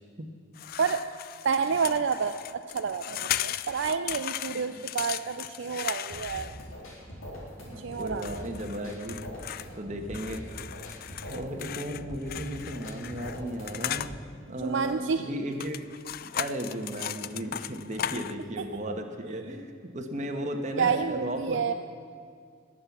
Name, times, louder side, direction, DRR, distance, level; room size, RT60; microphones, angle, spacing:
sound 1, 0.6-6.9 8.0-9.7 10.1-14.1 15.5-18.4, left 11 dB, 45° left, 0.3 m, -37 dB
voice 1, 1.4-6.5 7.8-8.5 14.6-15.3 18.6-18.7 19.2-19.4 20.8-21.7, right 6 dB, 65° right, 8 dB, 0.4 m, -29 dB
voice 2, 4.6-4.9 7.6-9.3 9.8-10.4 11.3-15.8 16.2-21.7, right 1 dB, 35° right, 4 dB, 1.3 m, -35 dB
sound 2, 6.1-14.1, equal, 85° left, 4.1 m, -43 dB
19.5 x 7.7 x 7.3 m, 2.2 s
head